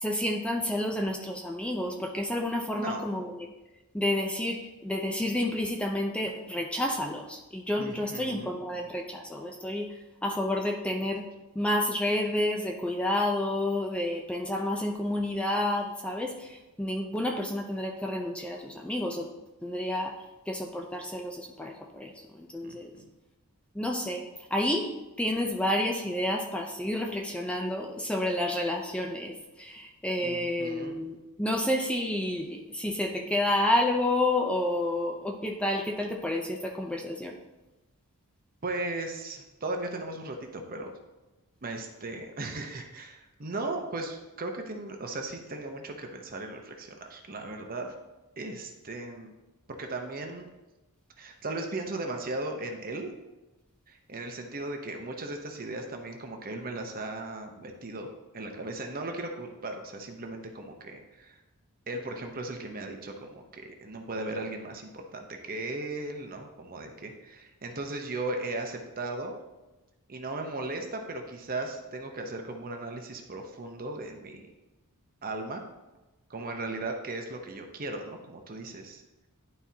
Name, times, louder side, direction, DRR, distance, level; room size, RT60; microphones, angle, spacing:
voice 1, 0.0-3.3 3.9-9.9 10.2-11.2 11.6-19.3 19.6-20.1 20.5-22.9 23.8-24.2 24.5-24.9 25.2-37.3, left 1 dB, 5° left, 1 dB, 0.5 m, -30 dB
voice 2, 2.7-3.1 7.8-8.5 22.6-23.1 30.2-30.9 38.6-41.0 41.6-47.9 48.4-49.3 49.7-50.5 51.2-53.1 53.9-58.1 58.3-61.4 61.9-69.4 70.1-74.5 75.2-75.6 76.3-79.0, right 2 dB, 40° right, 3 dB, 0.9 m, -37 dB
11.0 x 4.4 x 2.8 m, 1.1 s
head